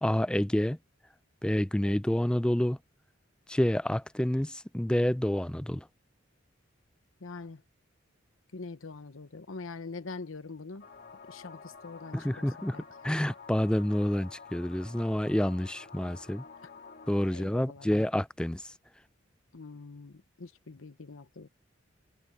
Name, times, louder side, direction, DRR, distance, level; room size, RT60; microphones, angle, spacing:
voice 1, 0.0-0.8 1.4-2.8 3.5-5.8 12.1-12.8 13.0-16.4 17.1-18.6, left 1 dB, 5° left, 0.3 m, -28 dB
voice 2, 7.2-7.6 8.5-10.9 11.3-12.8 16.6-16.7 17.3-17.9 19.5-21.5, left 3 dB, 80° left, 1.0 m, -44 dB
sound 1, 10.8-17.3, left 5 dB, 50° left, 2.4 m, -50 dB
head